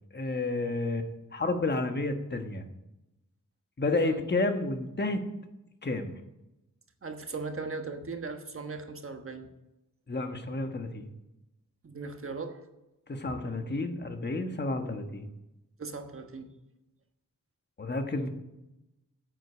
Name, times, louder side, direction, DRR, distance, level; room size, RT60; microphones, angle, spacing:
voice 1, 0.1-2.6 3.8-5.2 5.8-6.2 10.1-11.1 13.1-15.3 17.8-18.3, left 2 dB, 30° left, 6 dB, 1.4 m, -31 dB
voice 2, 7.0-9.5 11.8-12.6 13.3-13.4 15.8-16.5, right 4 dB, 40° right, 6 dB, 1.3 m, -38 dB
9.5 x 8.4 x 8.1 m, 0.94 s
wide cardioid pair, 150°, 33 cm